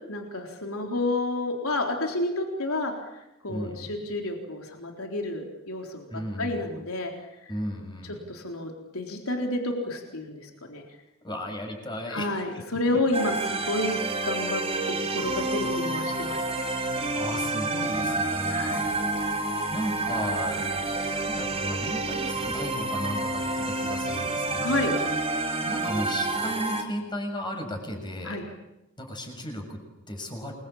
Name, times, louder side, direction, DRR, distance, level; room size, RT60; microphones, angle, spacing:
voice 1, 0.1-7.1 7.4-7.5 8.3-10.8 12.1-14.6 15.1-16.5 18.5-18.9 24.6-24.9 28.2-28.4, left 2 dB, 75° left, 2 dB, 4.0 m, -30 dB
voice 2, 3.5-3.9 6.1-6.7 7.5-8.2 11.2-12.6 17.1-18.9 19.7-20.7 21.1-25.0 25.6-28.4 29.0-30.5, equal, 20° left, 4 dB, 6.8 m, -35 dB
sound 1, 13.1-26.8, right 2 dB, 30° right, 4.7 m, -29 dB
28.5 x 22.5 x 8.8 m, 0.93 s
head